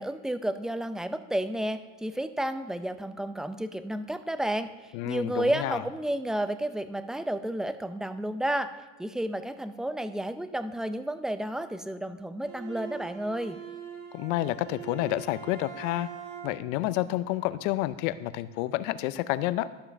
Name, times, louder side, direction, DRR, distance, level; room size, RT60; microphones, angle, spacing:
voice 1, 0.0-8.7 9.0-13.6, right 1 dB, ahead, 11 dB, 0.4 m, -31 dB
voice 2, 4.9-5.8 14.1-16.1 16.4-19.7, left 15 dB, 80° left, 15 dB, 0.6 m, -29 dB
Bowed string instrument, 12.4-16.8, right 8 dB, 70° right, 2.1 m, -43 dB
12.0 x 5.7 x 6.3 m, 1.2 s
supercardioid pair, 110°, 37 cm